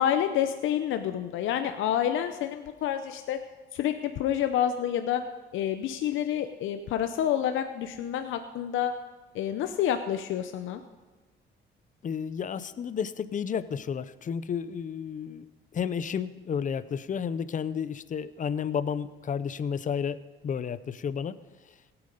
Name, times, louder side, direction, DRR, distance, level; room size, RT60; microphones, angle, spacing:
voice 1, 0.0-3.4 3.7-5.2 5.5-8.9 9.3-10.8, left 10 dB, 80° left, 8 dB, 0.7 m, -28 dB
voice 2, 12.0-15.5 15.7-21.4, left 7 dB, 40° left, 14 dB, 0.6 m, -32 dB
17.0 x 8.8 x 5.3 m, 1.3 s
cardioid pair, 90°, 20 cm